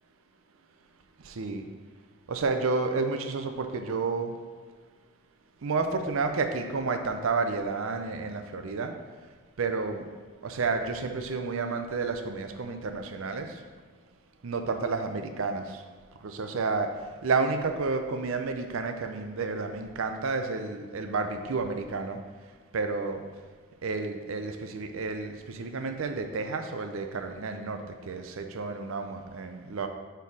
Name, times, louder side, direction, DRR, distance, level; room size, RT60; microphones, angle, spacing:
voice 1, 1.2-1.6 2.3-4.4 5.6-8.9 9.6-10.1 10.4-13.6 14.4-15.8 16.2-16.9 17.2-22.2 22.7-23.2 23.8-29.9, right 4 dB, 65° right, 6 dB, 0.5 m, -30 dB
5.4 x 4.5 x 4.7 m, 1.5 s
head